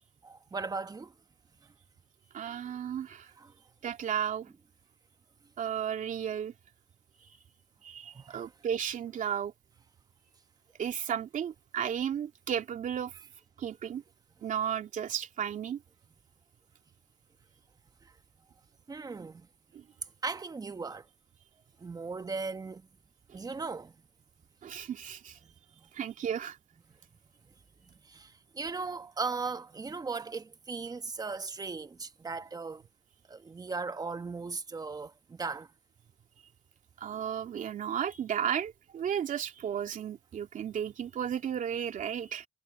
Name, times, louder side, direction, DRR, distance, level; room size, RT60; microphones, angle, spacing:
voice 1, 0.2-1.1 3.4-3.5 8.1-8.5 18.0-18.1 18.9-19.5 20.2-21.0 21.8-22.8 23.3-23.9 25.4-25.5 28.0-32.8 33.3-35.7, right 4 dB, 20° right, 1.3 m, -37 dB
voice 2, 2.3-3.3 3.8-4.5 5.6-6.5 7.8-9.5 10.8-13.1 13.6-14.0 14.4-15.8 19.7-19.8 23.3-23.4 24.6-25.4 25.9-26.6 37.0-42.5, right 9 dB, 50° right, 2.7 m, -34 dB
cardioid pair, 110°, 17 cm